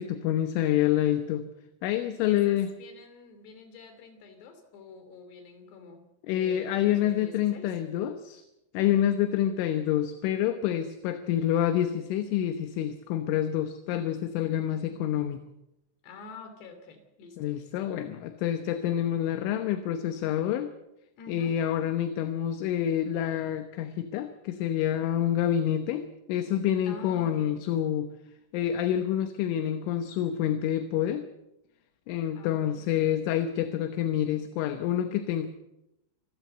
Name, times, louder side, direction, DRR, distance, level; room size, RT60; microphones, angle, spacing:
voice 1, 0.0-1.5 1.8-2.7 6.3-8.4 8.8-15.4 17.4-20.7 21.3-28.1 28.5-31.3 32.1-35.5, left 11 dB, 75° left, 9 dB, 3.4 m, -27 dB
voice 2, 2.1-7.8 16.0-17.7 21.2-21.6 26.9-27.6 32.3-33.1, left 3 dB, 60° left, 8 dB, 4.7 m, -48 dB
27.5 x 13.5 x 8.0 m, 0.88 s
omnidirectional pair, 5.9 m